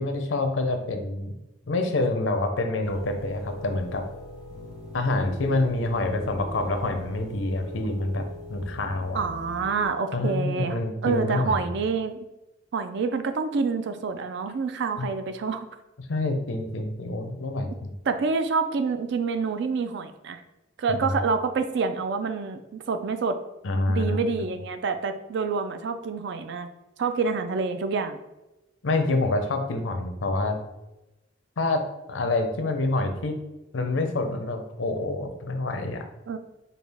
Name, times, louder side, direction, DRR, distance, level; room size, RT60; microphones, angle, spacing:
voice 1, 0.0-1.3 1.7-4.0 4.9-8.2 8.5-9.2 10.1-11.6 15.0-15.1 16.1-17.9 20.9-21.1 23.6-24.6 28.8-30.6 31.6-31.8 32.1-33.4 33.7-36.0, left 2 dB, 85° left, 6 dB, 0.6 m, -27 dB
sound 1, 2.8-9.9, equal, 35° right, 1.1 m, -41 dB
voice 2, 9.1-12.2 12.7-15.7 18.1-20.4 20.8-23.4 23.9-26.7 27.0-28.2 36.3-36.4, right 4 dB, 65° right, 8 dB, 0.4 m, -27 dB
5.1 x 2.3 x 3.4 m, 1.0 s
head